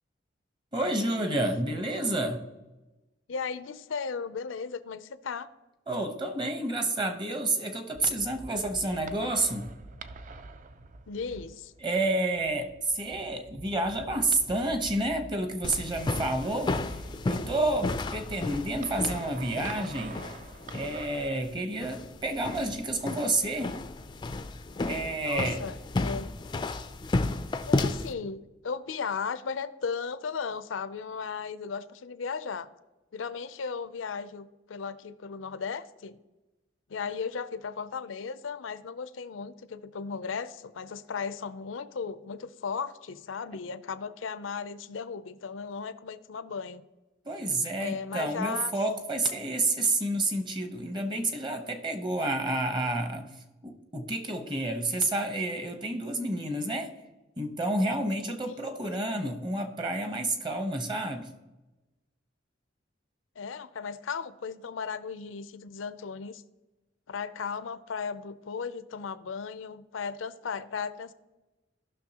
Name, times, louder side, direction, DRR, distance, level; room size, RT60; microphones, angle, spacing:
voice 1, 0.7-2.4 5.9-9.7 11.8-20.2 20.7-23.7 24.9-25.7 47.2-53.3 53.6-56.9 57.4-61.3, right 2 dB, 25° right, 0.9 m, -30 dB
voice 2, 3.3-5.5 11.1-11.7 25.2-26.3 27.7-32.7 33.1-36.2 36.9-46.8 47.8-48.7 58.5-58.6 58.9-59.1 63.4-66.4 67.1-71.1, left 5 dB, 80° left, 0.5 m, -36 dB
sound 1, 7.9-21.3, right 3 dB, 40° right, 0.4 m, -46 dB
sound 2, 15.6-28.1, left 2 dB, 25° left, 0.3 m, -33 dB
16.5 x 6.1 x 2.9 m
head